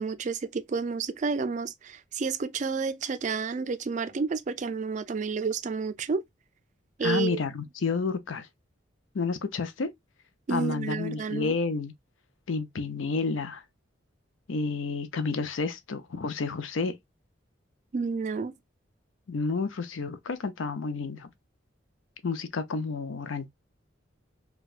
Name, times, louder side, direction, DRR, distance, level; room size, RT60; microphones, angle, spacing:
voice 1, 0.0-6.2 7.0-7.4 10.5-11.6 17.9-18.5, right 5 dB, 40° right, 0.3 m, -30 dB
voice 2, 7.0-8.5 9.1-9.9 10.5-11.9 12.5-13.6 14.5-16.9 19.3-21.3 22.2-23.5, left 4 dB, 90° left, 0.6 m, -30 dB
4.5 x 2.2 x 2.4 m
head